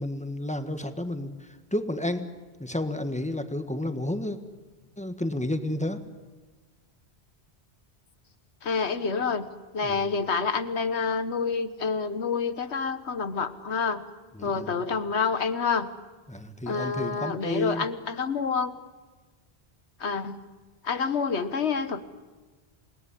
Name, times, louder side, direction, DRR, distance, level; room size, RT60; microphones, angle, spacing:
voice 1, 0.0-2.3 2.6-4.4 5.0-6.0 9.8-10.0 14.3-14.7 16.3-17.9, left 1 dB, 5° left, 8 dB, 1.5 m, -31 dB
voice 2, 8.6-9.5 9.7-14.0 14.4-15.9 16.7-18.7 20.0-20.4 20.8-22.0, left 5 dB, 90° left, 11 dB, 1.5 m, -28 dB
28.0 x 18.5 x 10.0 m, 1.3 s
omnidirectional pair, 1.1 m